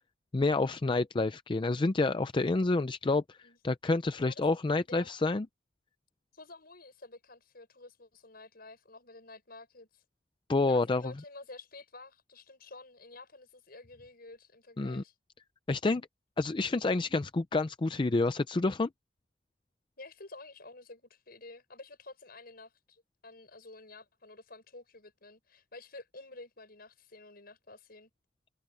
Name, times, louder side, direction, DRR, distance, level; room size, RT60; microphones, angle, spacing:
voice 1, 0.3-3.4 3.6-5.5 10.5-11.0 14.8-15.0 15.7-16.0 16.4-18.9, left 3 dB, 25° left, 0.4 m, -28 dB
voice 2, 6.3-10.0 10.7-15.1 20.0-28.1, left 2 dB, 55° left, 6.5 m, -50 dB
head